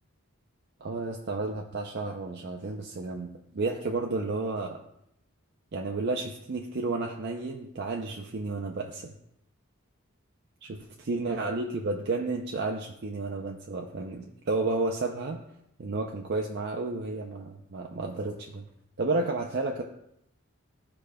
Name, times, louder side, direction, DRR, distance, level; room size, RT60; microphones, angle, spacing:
voice 1, 0.8-3.3 3.5-4.8 5.7-9.1 10.6-15.4 15.8-18.7 19.0-19.8, right 3 dB, 50° right, 1 dB, 0.5 m, -32 dB
12.5 x 4.9 x 2.2 m, 0.78 s
head